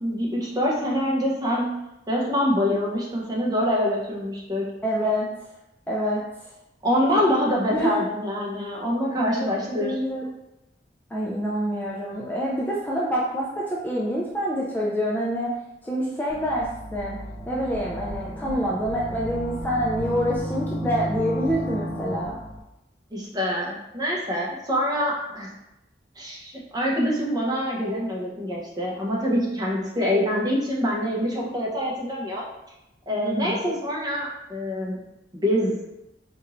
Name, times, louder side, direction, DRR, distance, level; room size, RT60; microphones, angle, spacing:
voice 1, 0.0-1.7 2.1-4.6 6.8-9.9 23.1-25.5 26.2-32.4 33.1-35.0 35.4-35.8, equal, 20° right, -4 dB, 0.8 m, -25 dB
voice 2, 4.8-5.3 5.9-6.2 7.7-8.0 9.4-10.3 11.1-15.5 15.8-17.2 17.5-22.4 33.2-33.6, equal, 10° left, -5 dB, 0.4 m, -26 dB
sound 1, 16.3-22.6, equal, 65° left, 0.6 m, -33 dB
4.3 x 3.0 x 2.5 m, 0.91 s
head